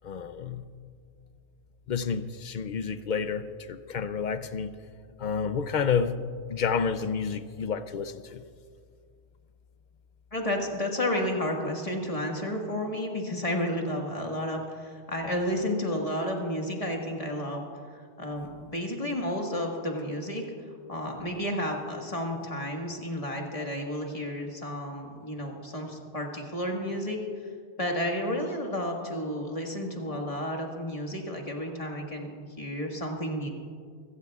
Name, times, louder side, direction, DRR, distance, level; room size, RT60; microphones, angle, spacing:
voice 1, 0.0-0.7 1.9-4.7 5.2-6.2 6.5-8.4, left 6 dB, 50° left, 11 dB, 0.6 m, -30 dB
voice 2, 10.3-17.7 17.9-20.4 20.9-27.2 27.8-33.5, left 1 dB, 30° left, 0 dB, 1.8 m, -31 dB
24.0 x 15.0 x 2.4 m, 2.1 s
omnidirectional pair, 1.2 m